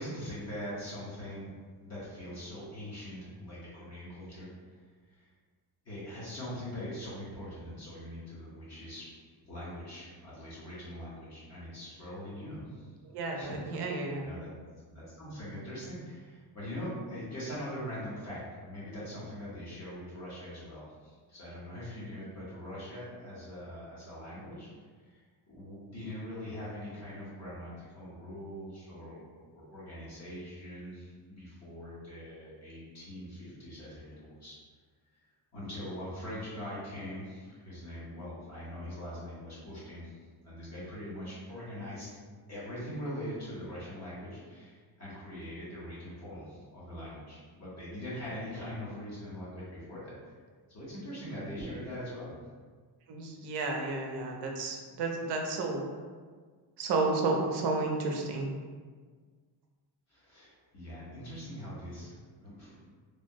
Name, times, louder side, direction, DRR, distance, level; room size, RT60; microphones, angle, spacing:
voice 1, 0.0-1.5 1.8-4.8 5.1-5.3 5.8-12.9 13.3-14.5 14.9-24.7 25.0-34.6 35.5-40.2 40.4-42.1 42.5-50.1 50.7-52.3 60.1-62.7, equal, 40° left, -9 dB, 1.1 m, -42 dB
voice 2, 13.0-14.3 53.1-55.8 56.8-58.5, right 3 dB, 65° right, 1 dB, 0.6 m, -32 dB
3.3 x 2.1 x 2.6 m, 1.5 s
cardioid pair, 150°, 43 cm